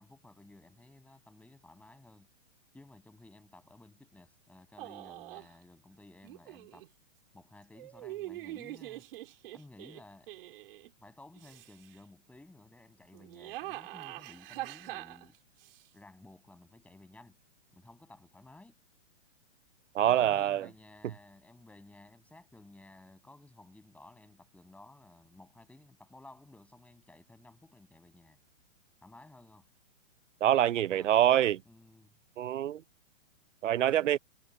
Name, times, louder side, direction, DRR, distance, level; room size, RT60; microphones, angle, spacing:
voice 1, 0.0-2.3 2.7-6.9 7.3-9.1 9.5-10.3 11.0-15.4 15.9-17.4 17.7-18.8 20.0-28.4 29.0-29.7 30.9-31.4 31.7-32.2, left 2 dB, 5° left, 6.9 m, -55 dB
sound 1, 4.8-5.5 6.2-6.9 7.7-10.9 11.4-12.0 13.1-15.8, right 16 dB, 50° right, 4.5 m, -44 dB
voice 2, 19.9-20.7 30.4-31.6 32.4-32.8 33.6-34.2, right 11 dB, 75° right, 0.7 m, -25 dB
hypercardioid pair, 145°, 37 cm